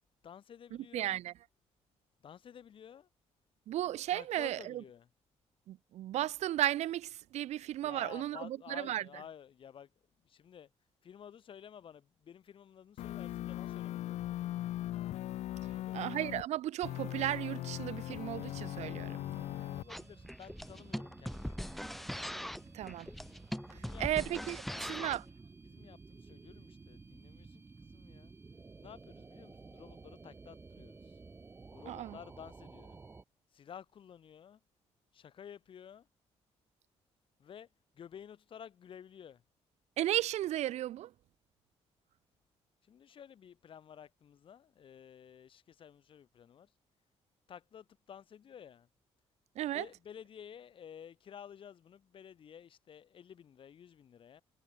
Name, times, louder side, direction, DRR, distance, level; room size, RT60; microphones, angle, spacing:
voice 1, 0.2-1.1 2.2-3.1 4.1-5.1 7.8-9.9 10.2-10.7 11.0-14.6 15.6-16.0 19.5-22.1 23.7-24.1 24.5-25.2 25.6-28.3 28.8-31.2 31.7-33.0 33.5-34.6 35.1-36.1 37.4-37.7 37.9-39.4 42.8-46.7 47.5-48.9 49.7-54.4, left 8 dB, 45° left, 1.9 m, -53 dB
voice 2, 0.9-1.3 3.7-4.8 5.7-9.0 15.9-19.2 22.7-23.1 23.7-25.2 31.9-32.2 40.0-41.1 49.6-49.9, right 13 dB, 70° right, 0.7 m, -35 dB
sound 1, 13.0-16.4 16.8-19.8, left 14 dB, 70° left, 0.5 m, -39 dB
sound 2, 18.2-33.2, right 4 dB, 20° right, 1.5 m, -54 dB
sound 3, 19.9-25.3, equal, ahead, 0.3 m, -41 dB
cardioid pair, 140°, 12 cm